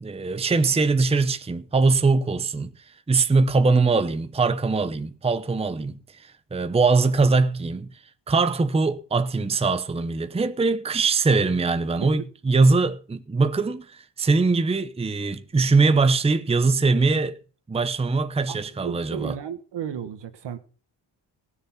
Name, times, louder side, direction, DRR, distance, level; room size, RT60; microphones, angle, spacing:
voice 1, 0.0-2.7 3.1-7.9 8.3-17.4 17.7-19.4, right 3 dB, 15° right, 0.7 m, -22 dB
voice 2, 18.5-20.6, right 8 dB, 70° right, 1.7 m, -34 dB
18.0 x 6.8 x 5.7 m
wide cardioid pair, 145°, 44 cm